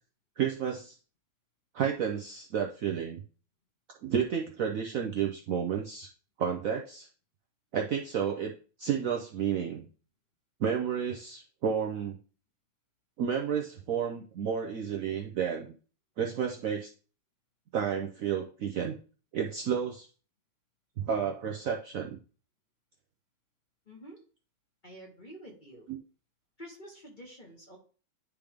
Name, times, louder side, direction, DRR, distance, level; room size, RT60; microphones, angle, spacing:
voice 1, 0.4-0.9 1.7-3.2 4.0-6.1 6.4-7.1 7.7-8.5 8.8-9.9 10.6-12.2 13.2-15.7 16.2-16.9 17.7-19.0 19.3-20.1 21.0-22.2 25.9-26.0, right 7 dB, 80° right, 1 dB, 0.7 m, -31 dB
voice 2, 23.9-24.2 24.8-25.9 26.6-27.8, equal, 30° left, -1 dB, 1.1 m, -48 dB
10.0 x 3.4 x 3.5 m, 0.39 s
omnidirectional pair, 2.2 m